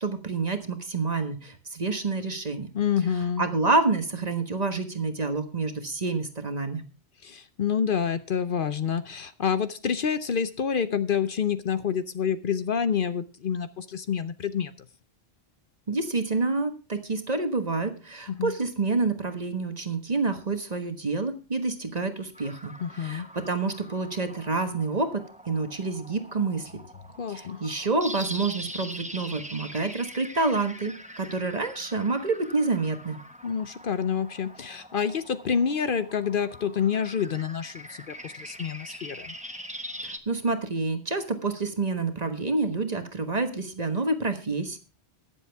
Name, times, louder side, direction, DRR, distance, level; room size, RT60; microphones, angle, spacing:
voice 1, 0.0-2.7 3.4-6.8 15.9-26.7 27.3-33.2 40.0-44.8, right 3 dB, 40° right, 7 dB, 1.4 m, -28 dB
voice 2, 2.7-3.4 7.2-14.7 18.4-18.5 22.8-23.3 27.2-27.6 33.4-39.3, left 7 dB, 60° left, 13 dB, 0.8 m, -28 dB
sound 1, 22.3-40.2, equal, 5° right, 1.0 m, -43 dB
21.5 x 7.4 x 3.4 m, 0.33 s
omnidirectional pair, 1.1 m